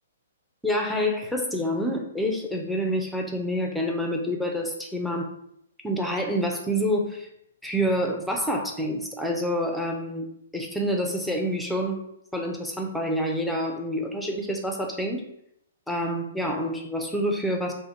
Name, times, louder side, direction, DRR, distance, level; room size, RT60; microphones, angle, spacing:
voice 1, 0.6-5.3 5.8-7.3 7.6-10.3 10.5-12.1 12.3-15.3 15.9-17.7, equal, ahead, 1 dB, 0.5 m, -27 dB
5.3 x 2.1 x 4.4 m, 0.74 s
hypercardioid pair, 165°, 0 cm